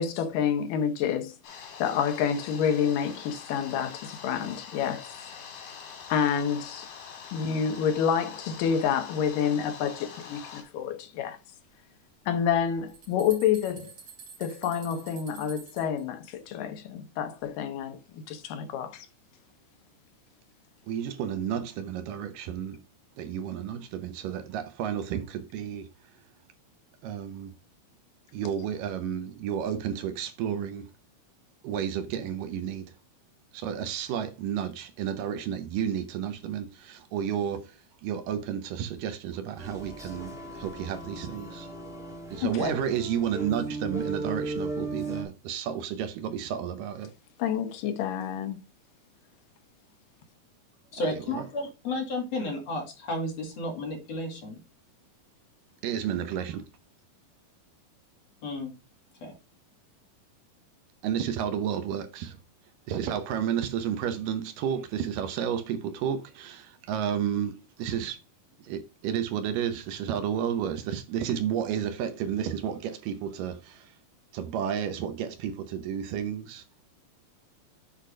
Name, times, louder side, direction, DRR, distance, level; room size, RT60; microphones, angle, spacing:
voice 1, 0.0-1.3 1.8-5.1 6.1-6.9 7.3-11.4 12.3-13.9 14.4-19.1 42.4-42.8 47.4-48.6, left 8 dB, 75° left, 2.4 m, -28 dB
sound 1, 1.4-10.6, left 7 dB, 90° left, 4.1 m, -44 dB
sound 2, 12.9-16.0, right 6 dB, 50° right, 2.9 m, -48 dB
voice 2, 20.9-22.8 23.2-25.9 27.0-27.5 28.3-30.9 31.6-32.9 33.5-41.7 42.3-47.1 50.9-51.5 55.8-56.6 61.0-62.4 62.9-68.2 68.6-73.9 74.3-76.6, right 9 dB, 75° right, 2.3 m, -31 dB
sound 3, 39.6-45.2, right 2 dB, 5° right, 0.6 m, -36 dB
voice 3, 50.9-54.6 58.4-58.7 59.2-59.3, left 2 dB, 50° left, 3.0 m, -32 dB
8.3 x 4.0 x 4.9 m
omnidirectional pair, 4.2 m